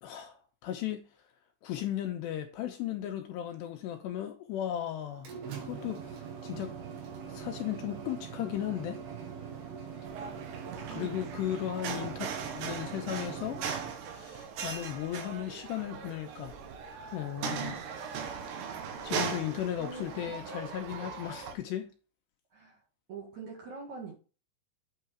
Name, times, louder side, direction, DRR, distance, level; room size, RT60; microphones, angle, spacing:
voice 1, 0.0-1.1 1.6-5.3 5.7-6.8 7.3-9.0 10.9-13.6 14.1-16.6 17.1-17.9 19.0-21.9, left 11 dB, 80° left, 2.6 m, -36 dB
sound 1, 5.0-13.9, right 7 dB, 85° right, 4.4 m, -42 dB
sound 2, 10.0-21.5, right 6 dB, 70° right, 3.2 m, -39 dB
voice 2, 10.9-11.3 11.9-12.1 19.8-20.1 22.5-22.8 23.1-24.2, right 5 dB, 50° right, 2.4 m, -43 dB
9.0 x 4.7 x 4.4 m
omnidirectional pair, 5.5 m